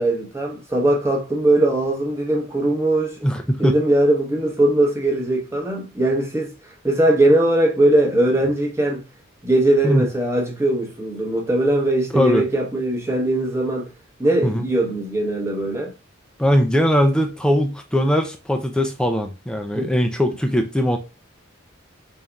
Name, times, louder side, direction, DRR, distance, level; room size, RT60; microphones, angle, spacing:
voice 1, 0.0-3.2 3.6-6.5 6.8-9.1 9.4-13.9 14.2-15.9 19.7-19.9, right 1 dB, 15° right, 0.8 m, -20 dB
voice 2, 3.2-3.7 9.8-10.1 12.1-12.4 14.4-14.6 16.4-21.0, equal, 5° left, 0.3 m, -20 dB
4.0 x 3.6 x 2.3 m
head